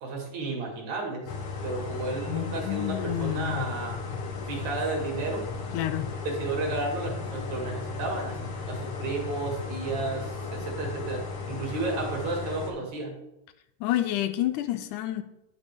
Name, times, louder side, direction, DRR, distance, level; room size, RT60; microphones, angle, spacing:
voice 1, 0.0-1.3 1.6-4.0 4.5-5.5 6.2-11.2 11.5-13.2, right 3 dB, 65° right, 2.9 m, -32 dB
Ambient Kitchen loop, 1.3-12.7, left 4 dB, 60° left, 1.5 m, -35 dB
voice 2, 2.3-3.7 5.7-6.1 13.8-15.2, left 13 dB, 85° left, 2.1 m, -29 dB
9.6 x 7.4 x 3.4 m
omnidirectional pair, 3.6 m